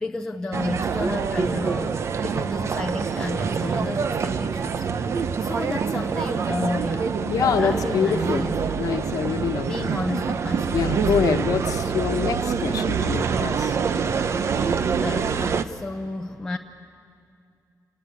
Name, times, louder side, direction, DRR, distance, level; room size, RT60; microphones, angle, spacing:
voice 1, 0.0-4.9 5.4-8.8 9.6-11.1 15.0-16.6, left 2 dB, 10° left, 2 dB, 0.7 m, -31 dB
sound 1, 0.5-15.6, right 6 dB, 50° right, 0.7 m, -25 dB
voice 2, 7.2-8.5 8.7-9.9 10.7-13.8, left 7 dB, 70° left, 7 dB, 1.1 m, -25 dB
28.0 x 19.5 x 9.5 m, 2.4 s
wide cardioid pair, 175°, 6 cm